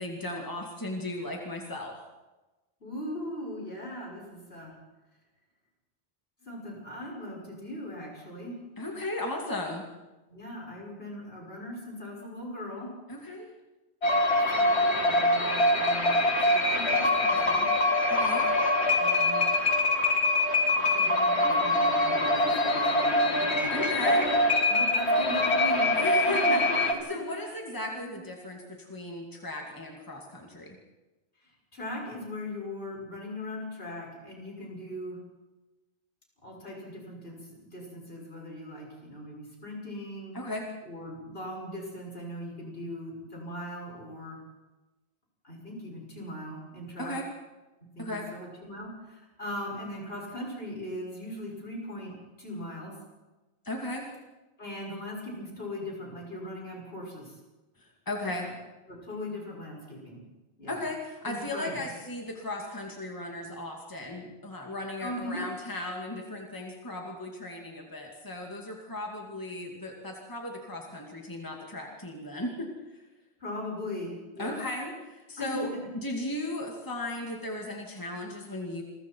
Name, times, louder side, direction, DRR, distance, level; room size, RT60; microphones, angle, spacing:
voice 1, 0.0-2.0 8.8-9.9 13.1-13.5 18.1-18.5 23.6-24.3 25.9-26.6 27.1-30.8 40.3-40.7 47.0-47.2 48.0-48.3 53.6-54.1 57.8-58.5 60.7-73.0 74.4-78.8, left 1 dB, 20° left, 1 dB, 2.4 m, -36 dB
voice 2, 2.8-4.7 6.4-8.5 10.3-12.9 14.5-17.7 18.9-19.6 20.7-24.2 24.7-25.9 26.4-26.7 27.1-27.2 28.0-28.1 31.7-35.2 36.4-37.4 37.7-40.4 40.8-44.4 45.4-47.1 47.9-52.9 54.6-57.3 58.4-58.5 58.9-60.2 60.6-60.8 61.2-61.9 65.0-65.5 73.4-74.6 75.4-75.6, left 1 dB, 65° left, -2 dB, 6.7 m, -39 dB
sound 1, 14.0-26.9, left 1 dB, 90° left, 2.6 m, -24 dB
28.0 x 22.5 x 4.6 m, 1.1 s
omnidirectional pair, 1.1 m